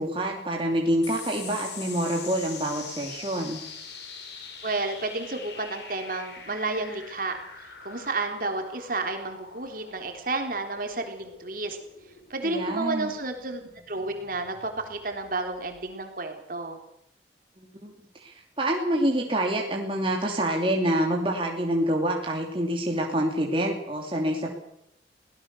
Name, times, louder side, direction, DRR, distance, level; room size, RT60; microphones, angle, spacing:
voice 1, 0.0-3.6 12.4-13.1 17.6-24.5, right 1 dB, 30° right, 0 dB, 2.8 m, -27 dB
sound 1, 1.0-15.8, left 5 dB, 75° left, 4.6 m, -44 dB
voice 2, 4.6-11.8 12.3-16.8, right 3 dB, 50° right, 4 dB, 3.6 m, -31 dB
23.5 x 17.5 x 7.0 m, 0.76 s
head